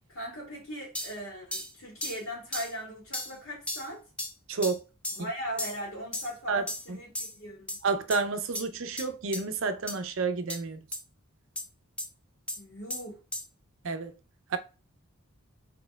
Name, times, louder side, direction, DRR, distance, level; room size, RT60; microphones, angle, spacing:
voice 1, 0.1-4.0 5.1-7.7 12.6-13.2, equal, 75° left, 2.1 m, -39 dB
sound 1, 0.9-1.1 1.5-1.7 2.0-2.2 2.5-2.7 3.1-3.3 3.7-3.9 4.2-4.3 4.6-4.8 5.0-5.2 5.6-5.8 6.1-6.3 6.7-6.9 7.1-7.3 7.7-7.8 8.1-8.2 8.5-8.6 9.0-9.1 9.3-9.4 9.9-10.0 10.5-10.6 10.9-11.0 11.6-11.7 12.0-12.1 12.5-12.6 12.9-13.0 13.3-13.4, left 1 dB, 5° left, 0.4 m, -35 dB
voice 2, 7.8-10.8 13.8-14.1 14.5-14.6, right 4 dB, 65° right, 0.5 m, -29 dB
4.3 x 4.2 x 2.2 m
head